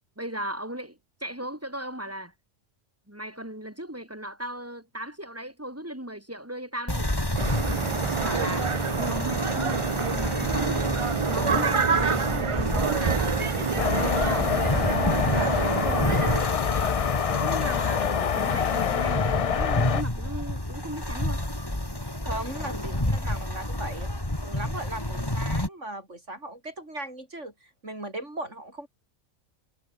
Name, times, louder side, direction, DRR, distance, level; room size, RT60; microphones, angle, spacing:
voice 1, 0.2-2.3 3.1-7.1 7.6-10.9 11.3-14.5 16.8-17.0 17.3-21.4, right 1 dB, 10° right, 6.6 m, -37 dB
sound 1, 6.9-25.7, left 1 dB, 20° left, 3.4 m, -30 dB
sound 2, 7.3-16.4, right 5 dB, 35° right, 0.6 m, -27 dB
sound 3, 13.8-20.0, left 7 dB, 55° left, 0.4 m, -26 dB
voice 2, 15.3-16.2 22.2-24.1 24.4-28.9, right 1 dB, 70° right, 7.5 m, -37 dB
omnidirectional pair, 1.3 m